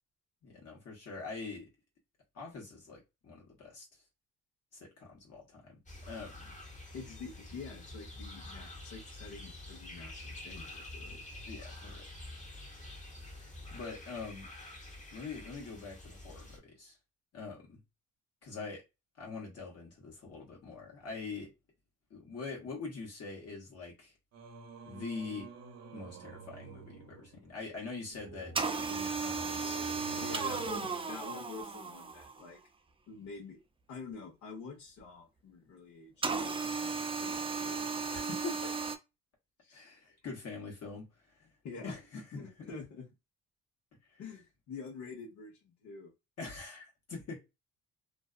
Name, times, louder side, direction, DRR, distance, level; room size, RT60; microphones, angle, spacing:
voice 1, 0.4-1.7 2.3-3.9 4.7-5.8 6.1-6.5 11.4-12.1 13.3-14.5 15.1-17.0 17.3-17.8 18.4-18.8 19.2-21.5 22.1-24.1 24.9-25.5 25.9-28.5 28.8-30.6 38.1-38.7 39.7-41.5 41.8-42.7 44.1-44.2 46.4-47.4, left 4 dB, 55° left, 1.1 m, -44 dB
sound 1, 5.9-16.6, left 1 dB, 25° left, 0.9 m, -47 dB
voice 2, 6.9-11.2 30.2-32.6 33.1-33.6 33.9-37.8 39.6-39.9 41.6-41.9 42.3-43.1 44.2-46.1, left 4 dB, 70° left, 1.0 m, -47 dB
Singing, 24.3-31.7, right 5 dB, 60° right, 0.7 m, -51 dB
sound 2, 28.6-32.5 36.2-39.0, right 4 dB, 20° right, 0.4 m, -35 dB
2.5 x 2.3 x 2.4 m
cardioid pair, 90°, 30 cm